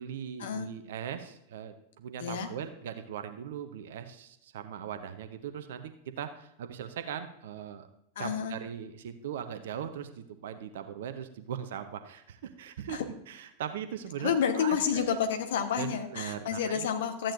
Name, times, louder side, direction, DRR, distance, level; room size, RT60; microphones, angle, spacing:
voice 1, 0.0-7.9 8.2-13.0 13.3-15.2 15.8-16.9, right 9 dB, 55° right, 9 dB, 0.7 m, -39 dB
voice 2, 2.2-2.5 8.2-8.5 12.9-13.0 14.2-17.3, left 7 dB, 60° left, 6 dB, 1.2 m, -30 dB
13.5 x 8.8 x 2.6 m, 0.79 s
figure-of-eight pair, 90°, 0 cm